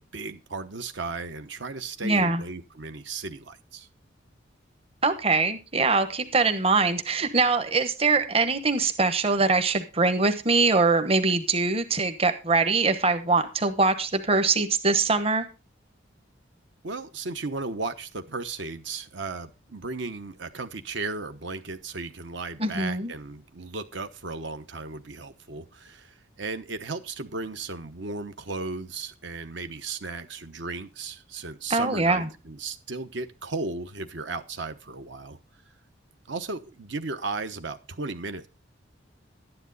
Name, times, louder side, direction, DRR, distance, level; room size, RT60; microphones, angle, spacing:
voice 1, 0.0-3.9 16.8-35.4 36.3-38.5, right 3 dB, 65° right, 1.0 m, -35 dB
voice 2, 2.0-2.4 5.0-15.5 22.6-23.1 31.7-32.3, right 3 dB, 30° right, 1.1 m, -23 dB
12.0 x 10.0 x 4.0 m
head